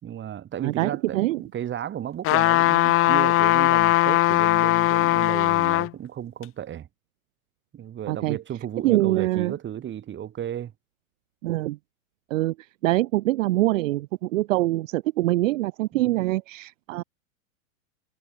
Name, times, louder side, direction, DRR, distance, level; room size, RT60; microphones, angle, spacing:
voice 1, 0.0-6.9 7.7-10.7 15.9-16.2, right 10 dB, 25° right, 6.6 m, -34 dB
voice 2, 0.6-1.4 8.1-8.4 8.8-9.5 11.4-11.8 12.3-12.5 12.8-17.0, right 17 dB, 60° right, 1.5 m, -24 dB
sound 1, 2.2-5.9 6.4-6.5, left 18 dB, 30° left, 1.1 m, -20 dB
hypercardioid pair, 125°, 43 cm